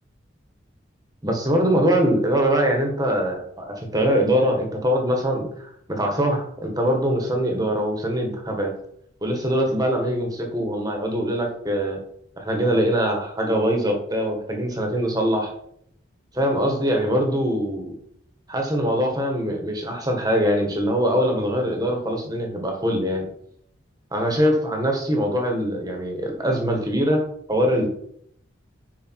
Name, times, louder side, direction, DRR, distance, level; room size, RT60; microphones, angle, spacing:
voice 1, 1.2-8.7 9.2-12.0 12.4-15.5 16.3-17.9 18.5-23.3 24.1-27.9, equal, 20° right, 2 dB, 1.7 m, -23 dB
9.6 x 5.1 x 4.8 m, 0.70 s
head